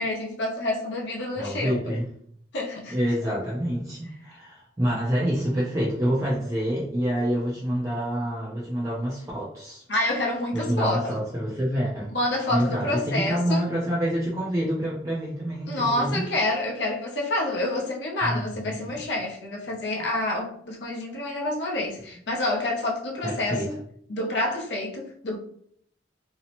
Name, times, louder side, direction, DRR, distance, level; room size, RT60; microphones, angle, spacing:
voice 1, 0.0-2.0 2.5-3.0 9.9-11.2 12.1-13.6 15.7-23.8 24.1-25.4, left 1 dB, 70° left, 0 dB, 0.6 m, -28 dB
voice 2, 1.4-2.0 2.9-9.8 10.5-12.2 12.5-16.2 18.2-18.9 23.2-23.7, equal, 15° right, -5 dB, 0.4 m, -27 dB
2.7 x 2.0 x 2.8 m, 0.66 s
head